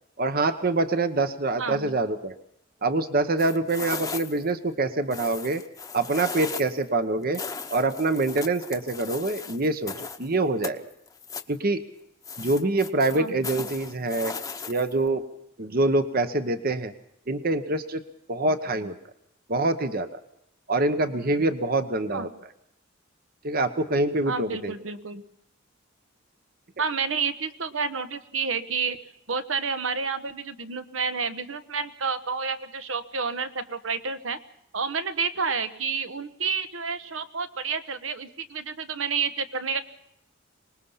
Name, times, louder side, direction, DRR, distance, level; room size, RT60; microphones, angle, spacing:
voice 1, 0.2-2.4 2.8-5.6 5.9-7.4 7.7-10.8 11.5-11.8 12.4-14.3 14.7-15.2 15.6-16.9 17.3-18.0 18.3-19.0 19.5-20.2 20.7-22.3 23.4-24.7, right 2 dB, 50° right, 10 dB, 1.0 m, -25 dB
voice 2, 1.6-2.0 13.1-13.7 22.1-22.3 24.2-25.2 26.8-29.0 29.3-34.4 34.7-39.8, right 5 dB, 75° right, 10 dB, 1.3 m, -30 dB
sound 1, 3.4-4.5 5.1-6.8 7.3-10.3 10.6-11.6 12.2-15.1, left 5 dB, 15° left, 0.9 m, -37 dB
25.0 x 20.0 x 5.7 m, 0.78 s
head